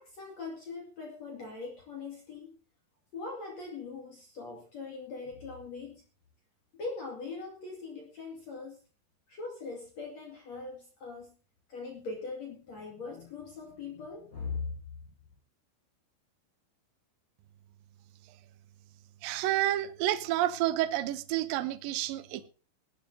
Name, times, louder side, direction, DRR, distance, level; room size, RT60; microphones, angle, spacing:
voice 1, 0.0-2.5 3.1-6.0 6.7-8.8 9.3-11.4 11.7-14.8, left 4 dB, 45° left, 2.9 m, -41 dB
voice 2, 19.2-22.5, right 14 dB, 85° right, 2.0 m, -29 dB
18.5 x 12.0 x 2.8 m
omnidirectional pair, 5.2 m